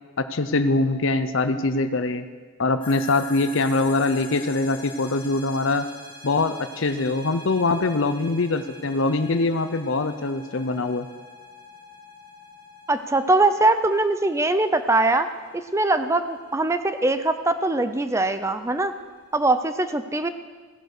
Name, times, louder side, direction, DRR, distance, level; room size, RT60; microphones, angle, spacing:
voice 1, 0.2-2.3 2.6-5.9 6.2-11.1, left 3 dB, 65° left, 9 dB, 0.7 m, -23 dB
sound 1, 2.8-19.6, left 3 dB, 25° left, 1.8 m, -46 dB
voice 2, 12.9-15.3 15.5-18.9 19.3-20.3, right 2 dB, 15° right, 10 dB, 0.5 m, -22 dB
16.0 x 11.0 x 6.6 m, 1.5 s
head